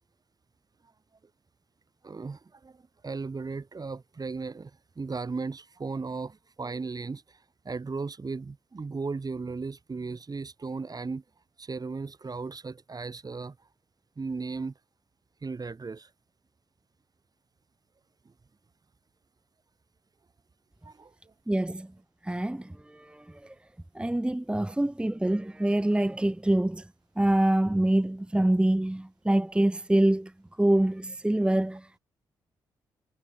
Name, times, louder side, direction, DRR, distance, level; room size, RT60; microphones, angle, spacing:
voice 1, 2.0-4.7 5.0-7.4 7.7-11.2 11.6-13.6 14.2-14.7 15.4-16.1 20.8-21.1, right 4 dB, 40° right, 5.3 m, -36 dB
voice 2, 21.5-21.9 22.2-23.5 23.9-26.9 27.2-30.3 30.6-32.0, right 1 dB, 10° right, 0.9 m, -25 dB
hypercardioid pair, 40°, 10 cm